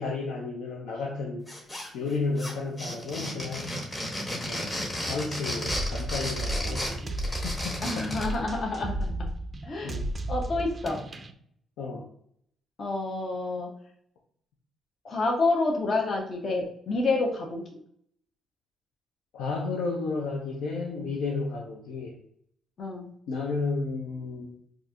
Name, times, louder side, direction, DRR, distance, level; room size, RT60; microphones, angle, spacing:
voice 1, 0.0-1.5 1.9-3.8 4.4-4.7 5.1-8.1 9.8-10.1 11.8-12.0 19.3-22.2 23.3-24.6, left 3 dB, 90° left, -2 dB, 0.5 m, -32 dB
sound 1, 1.5-2.1 2.4-8.3, equal, 25° left, 1.2 m, -33 dB
sound 2, 5.7-11.3, right 1 dB, 35° right, 0.3 m, -34 dB
voice 2, 7.8-9.3 9.6-9.9 10.3-11.0 12.8-13.7 15.0-17.6 22.8-23.1, left 3 dB, 50° left, 0 dB, 0.7 m, -28 dB
4.1 x 2.5 x 2.4 m, 0.68 s
cardioid pair, 90°, 0 cm